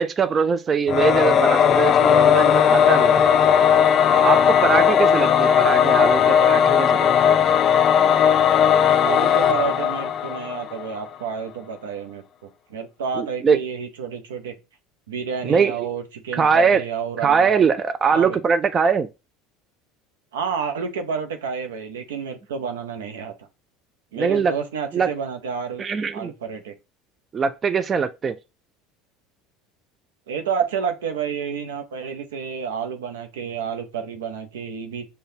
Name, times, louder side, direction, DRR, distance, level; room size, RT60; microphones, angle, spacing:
voice 1, 0.0-3.2 4.2-7.3 13.1-13.6 15.4-15.8 16.3-16.8 17.2-19.1 24.2-24.5 24.9-25.1 25.8-26.3 27.3-28.3, right 6 dB, 35° right, 0.3 m, -21 dB
Singing / Musical instrument, 0.9-10.9, left 8 dB, 45° left, 0.3 m, -17 dB
voice 2, 9.0-12.2 12.7-14.5 15.1-17.7 18.1-18.4 20.3-23.5 24.1-25.8 26.1-26.7 30.3-35.1, right 6 dB, 85° right, 0.7 m, -30 dB
6.4 x 2.2 x 2.7 m
hypercardioid pair, 85°, 0 cm